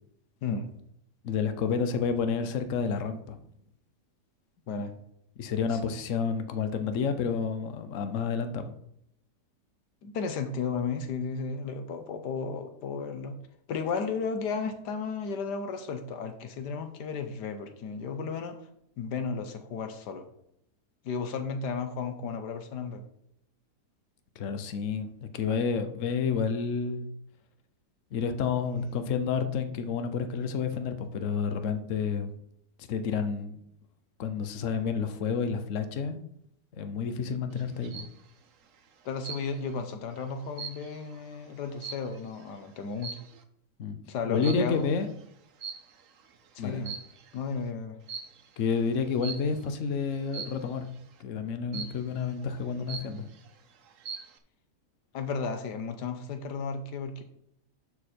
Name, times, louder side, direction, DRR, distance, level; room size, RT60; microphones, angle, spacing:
voice 1, 0.4-0.7 4.7-4.9 5.7-5.8 10.0-13.3 13.7-18.6 19.0-20.2 21.0-23.0 39.0-43.2 44.1-44.9 46.5-46.9 47.3-48.0 55.1-57.2, left 5 dB, 85° left, 7 dB, 1.6 m, -34 dB
voice 2, 1.2-3.4 5.4-8.7 24.4-27.1 28.1-32.3 32.9-33.6 34.2-36.2 36.7-38.1 43.8-44.0 44.3-45.1 46.6-46.8 48.6-50.9 51.2-53.3, left 5 dB, 55° left, 9 dB, 1.1 m, -30 dB
sound 1, 37.6-38.2 39.2-39.8 40.2-42.4 43.0-43.4 44.4-44.8 45.6-46.2 46.7-47.4 48.1-48.4 49.2-49.6 50.3-50.7 51.7-52.2 52.6-52.7 52.9-53.5 53.9-54.4, right 6 dB, 60° right, 1.1 m, -41 dB
11.5 x 4.6 x 4.4 m, 0.73 s
omnidirectional pair, 1.8 m